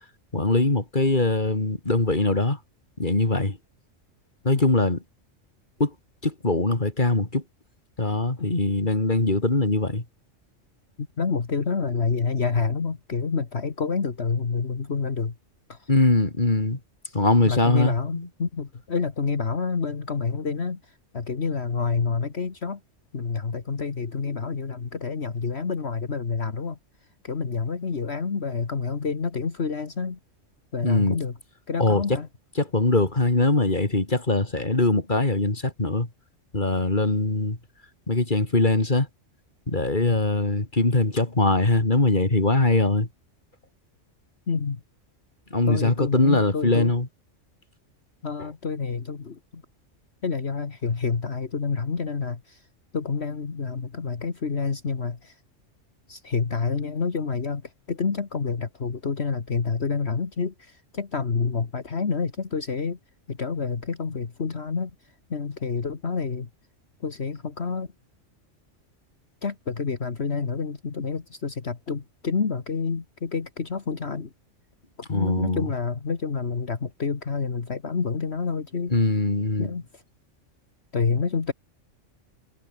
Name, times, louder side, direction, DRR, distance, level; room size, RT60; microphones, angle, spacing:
voice 1, 0.3-2.6 3.0-3.6 4.4-5.0 5.8-5.9 6.2-7.4 8.0-10.0 15.9-16.8 17.1-18.3 30.8-31.2 31.8-32.2 32.6-36.1 36.5-37.6 38.1-39.1 39.7-43.1 45.5-47.1 75.1-75.7 78.9-79.7, left 2 dB, 40° left, 3.2 m, -22 dB
voice 2, 11.0-15.4 15.7-15.9 17.5-22.8 23.1-26.8 27.2-30.2 30.7-31.3 31.7-32.3 40.0-40.2 44.5-44.8 45.7-47.0 48.2-49.6 50.2-52.7 52.9-55.4 56.1-63.0 63.3-64.9 65.3-66.5 67.0-67.9 69.4-74.3 75.1-78.9 79.6-80.0 80.9-81.5, left 5 dB, 55° left, 2.0 m, -28 dB
omnidirectional pair, 1.3 m